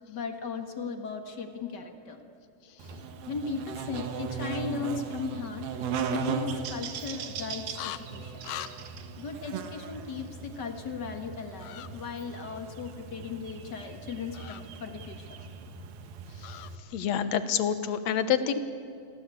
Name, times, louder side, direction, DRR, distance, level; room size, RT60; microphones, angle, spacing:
voice 1, 0.1-2.2 3.3-5.7 6.1-8.4 9.2-15.4 16.7-16.8, left 5 dB, 40° left, 6 dB, 1.7 m, -37 dB
Buzz, 2.8-16.8, right 5 dB, 85° right, 3.5 m, -38 dB
sound 1, 7.7-8.0 8.4-8.7 11.6-11.9 14.3-14.6 16.4-16.7, left 14 dB, 90° left, 2.8 m, -39 dB
voice 2, 16.9-18.6, left 8 dB, 60° left, 11 dB, 2.1 m, -27 dB
29.0 x 23.0 x 8.5 m, 2.5 s
omnidirectional pair, 4.1 m